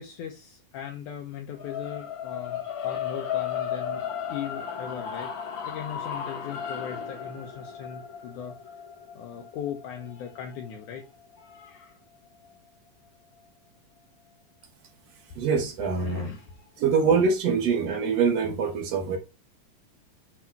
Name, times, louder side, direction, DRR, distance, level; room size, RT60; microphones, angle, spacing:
voice 1, 0.0-4.0 4.3-8.5 9.1-12.0 15.6-17.1 17.6-17.8, left 8 dB, 70° left, 2.4 m, -39 dB
sound 1, 1.6-11.8, left 8 dB, 55° left, 1.4 m, -35 dB
voice 2, 15.4-16.3 16.8-19.2, right 5 dB, 60° right, 2.0 m, -24 dB
9.8 x 3.8 x 4.5 m
omnidirectional pair, 3.9 m